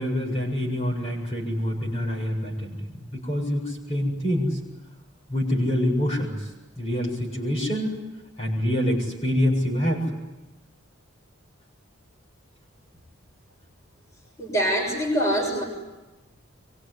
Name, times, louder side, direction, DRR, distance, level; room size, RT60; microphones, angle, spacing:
voice 1, 0.0-2.8 3.1-4.6 5.3-6.4 6.8-8.0 8.4-10.0, equal, 30° left, -1 dB, 7.5 m, -26 dB
voice 2, 14.4-15.6, equal, 15° left, 0 dB, 7.1 m, -24 dB
24.5 x 24.0 x 10.0 m, 1.1 s
head